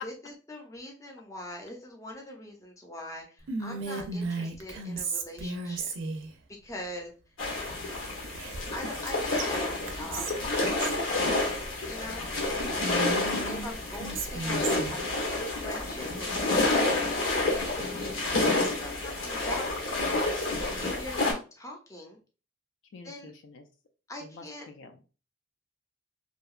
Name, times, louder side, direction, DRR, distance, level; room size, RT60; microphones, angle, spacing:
voice 1, 0.0-5.9 6.5-7.1 8.7-10.3 11.9-12.7 12.9-13.1 13.5-15.2 15.6-20.0 20.8-22.2 23.0-23.3 24.1-24.7, left 1 dB, 15° left, 1 dB, 0.5 m, -42 dB
Whispering, 3.5-6.3 8.3-9.1 9.4-9.5 9.9-11.0 12.8-15.0, right 3 dB, 80° right, 0.4 m, -35 dB
sound 1, 7.4-21.3, left 2 dB, 90° left, 0.9 m, -29 dB
voice 2, 22.9-23.7 24.2-25.0, left 3 dB, 70° left, 5 dB, 0.4 m, -49 dB
2.7 x 2.2 x 2.3 m, 0.34 s
head